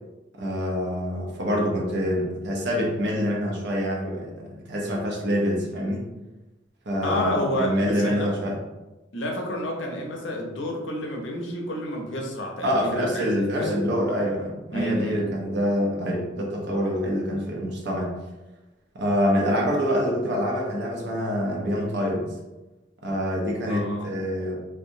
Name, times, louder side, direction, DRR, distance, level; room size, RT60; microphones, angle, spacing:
voice 1, 0.4-6.1 6.9-8.6 12.6-18.1 18.9-22.3 23.0-24.6, equal, 60° right, -2 dB, 0.7 m, -26 dB
voice 2, 7.0-8.3 9.1-13.8 14.7-15.3 23.7-24.1, equal, 70° left, 0 dB, 0.6 m, -29 dB
2.7 x 2.3 x 2.6 m, 1.1 s
head